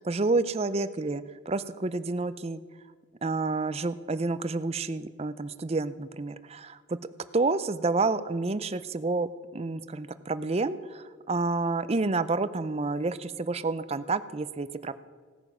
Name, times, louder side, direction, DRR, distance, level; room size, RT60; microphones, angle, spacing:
voice 1, 0.0-2.6 3.2-7.0 7.3-14.9, right 3 dB, 30° right, 13 dB, 0.5 m, -29 dB
17.0 x 9.1 x 6.1 m, 1.5 s
head